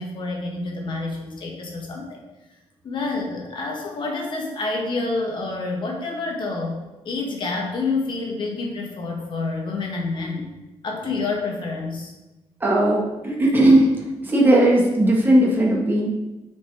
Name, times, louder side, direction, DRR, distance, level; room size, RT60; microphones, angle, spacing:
voice 1, 0.0-2.2 2.8-6.8 7.1-10.5 10.8-12.1, left 3 dB, 45° left, 0 dB, 1.8 m, -28 dB
voice 2, 12.6-13.9 14.2-16.1, right 1 dB, 20° right, -3 dB, 1.5 m, -17 dB
7.2 x 4.7 x 4.7 m, 1.1 s
cardioid pair, 135°, 11 cm